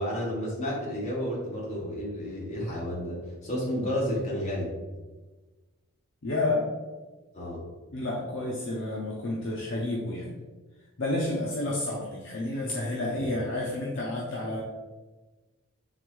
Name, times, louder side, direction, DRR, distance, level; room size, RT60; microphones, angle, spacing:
voice 1, 0.0-3.2 3.4-4.7 7.3-7.6 13.2-13.3, equal, 35° left, -5 dB, 1.2 m, -31 dB
voice 2, 6.2-6.7 7.9-10.3 11.0-14.6, left 2 dB, 60° left, -3 dB, 0.6 m, -30 dB
3.9 x 3.3 x 3.2 m, 1.2 s
head